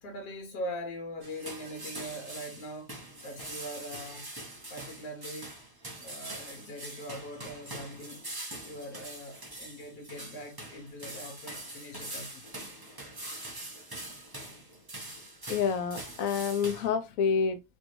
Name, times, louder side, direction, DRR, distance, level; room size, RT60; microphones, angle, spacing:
voice 1, 0.0-2.9 3.2-4.3 4.7-5.5 6.0-8.2 8.6-12.5, equal, 85° left, 1.5 m, -42 dB
sound 1, 1.2-16.9, right 1 dB, 15° right, 0.9 m, -43 dB
voice 2, 15.5-17.6, left 6 dB, 65° left, 1.0 m, -28 dB
4.3 x 2.6 x 3.1 m
omnidirectional pair, 1.7 m